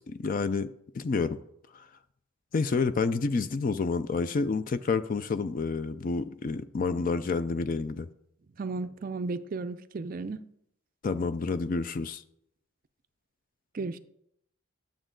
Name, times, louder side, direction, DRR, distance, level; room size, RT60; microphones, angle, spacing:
voice 1, 0.0-1.4 1.7-1.9 2.5-8.1 11.0-12.2, left 4 dB, 40° left, 0.4 m, -29 dB
voice 2, 8.6-10.4 13.7-14.0, right 3 dB, 40° right, 0.4 m, -34 dB
10.5 x 7.1 x 3.8 m
head